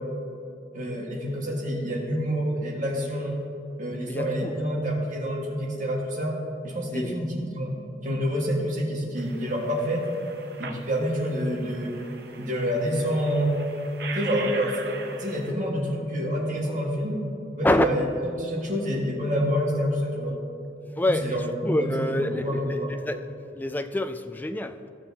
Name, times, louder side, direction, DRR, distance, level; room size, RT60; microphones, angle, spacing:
voice 1, 0.7-3.3 3.8-6.3 6.6-7.7 8.0-10.0 10.6-11.9 12.4-13.5 14.1-17.2 17.6-18.0 18.4-20.3 21.0-22.9, equal, 45° right, -2 dB, 1.6 m, -27 dB
voice 2, 4.1-4.5 6.9-7.3 15.9-16.6 17.6-18.1 21.0-23.3 23.5-24.9, left 1 dB, 10° left, 8 dB, 0.3 m, -27 dB
sound 1, 9.2-15.5, right 5 dB, 60° right, 0.8 m, -41 dB
14.5 x 7.0 x 2.8 m, 2.8 s
head